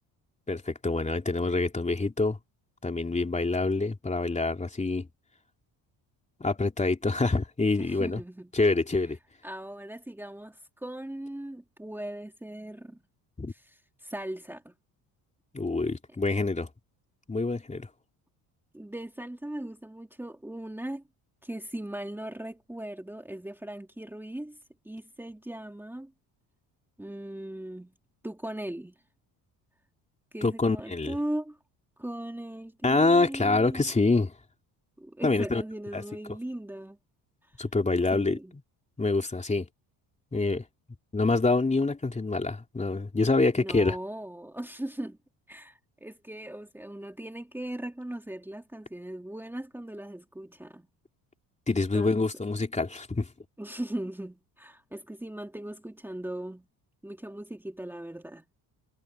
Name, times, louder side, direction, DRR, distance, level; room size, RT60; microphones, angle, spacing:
voice 1, 0.5-2.4 2.8-5.1 6.4-8.2 8.5-9.2 13.4-13.5 15.5-16.7 17.3-17.9 30.4-31.1 32.8-34.3 35.2-35.6 35.9-36.0 37.6-38.4 39.0-39.6 40.3-40.6 41.1-44.0 51.7-53.3, left 3 dB, 15° left, 3.4 m, -26 dB
voice 2, 7.8-8.5 9.4-13.0 13.5-14.7 18.7-21.0 21.4-24.6 24.8-26.1 27.0-27.9 28.2-29.0 30.3-31.6 32.0-33.9 35.0-37.0 37.4-37.5 38.1-38.6 43.6-45.2 45.5-50.9 51.9-52.2 53.6-56.7 57.0-58.4, right 1 dB, 5° right, 2.6 m, -38 dB
cardioid pair, 110°, 41 cm